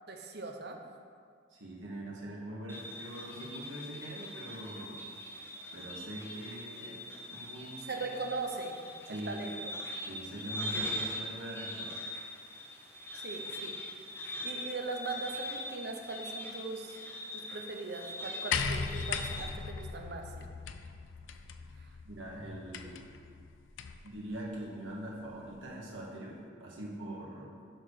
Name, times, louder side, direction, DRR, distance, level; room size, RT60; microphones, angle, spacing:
voice 1, 0.1-0.8 7.8-8.8 9.1-9.7 13.1-13.8 14.2-17.0 17.3-20.5 21.8-21.9, right 3 dB, 60° right, 3 dB, 0.9 m, -40 dB
voice 2, 1.5-5.1 5.7-7.0 7.3-8.0 9.1-9.5 10.0-12.0 22.0-23.0 24.0-27.6, right 1 dB, 85° right, -3 dB, 1.9 m, -43 dB
sound 1, 2.7-19.5, left 1 dB, 10° left, 0.8 m, -42 dB
sound 2, 18.5-24.1 25.2-25.3, left 5 dB, 80° left, 0.5 m, -38 dB
7.4 x 4.9 x 6.4 m, 2.2 s
head